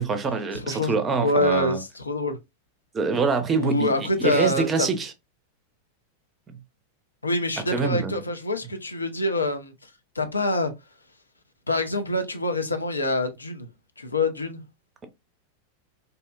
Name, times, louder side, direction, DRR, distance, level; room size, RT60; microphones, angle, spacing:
voice 1, 0.0-1.8 2.9-5.1 7.7-8.1, right 4 dB, 20° right, 0.5 m, -25 dB
voice 2, 0.5-0.9 1.2-2.4 3.5-4.9 7.2-9.9 10.2-10.7 11.7-13.7 14.0-14.6, left 1 dB, 80° left, 0.4 m, -25 dB
2.6 x 2.1 x 2.3 m
figure-of-eight pair, 90°, 0 cm